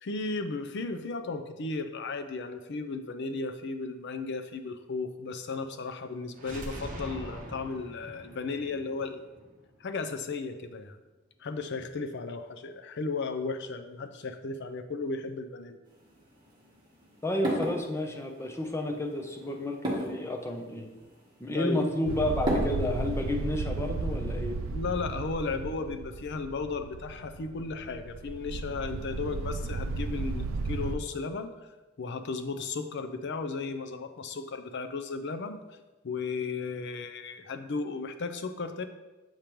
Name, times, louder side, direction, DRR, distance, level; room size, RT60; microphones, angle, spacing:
voice 1, 0.0-9.2 9.8-11.0 11.4-15.8 21.5-21.8 24.7-31.5 32.0-35.6 36.0-38.8, left 4 dB, 60° left, 9 dB, 0.5 m, -35 dB
sound 1, 6.3-10.2, right 1 dB, 40° right, 0.9 m, -43 dB
sound 2, 15.8-23.2, equal, 20° right, 1.4 m, -37 dB
voice 2, 17.2-19.8 20.1-20.9 21.4-24.6, left 1 dB, 15° left, 3 dB, 0.6 m, -31 dB
sound 3, 22.1-30.9, right 3 dB, 75° right, 0.4 m, -34 dB
7.3 x 5.0 x 3.0 m, 1.1 s
head